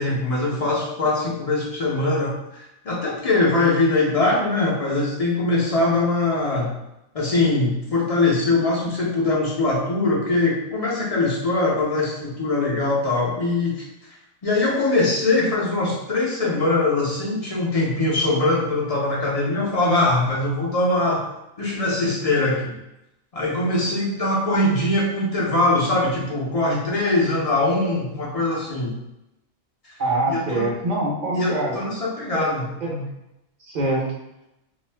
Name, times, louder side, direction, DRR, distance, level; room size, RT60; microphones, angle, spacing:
voice 1, 0.0-6.7 7.1-13.9 14.4-21.2 21.6-22.8 23.3-29.0 29.8-29.9 30.3-30.7 31.3-33.1, left 2 dB, 45° left, -4 dB, 0.4 m, -22 dB
voice 2, 30.0-31.8 32.3-32.5 32.8-32.9 33.6-34.0, right 2 dB, 45° right, -3 dB, 0.6 m, -24 dB
2.5 x 2.4 x 3.3 m, 0.88 s
omnidirectional pair, 1.4 m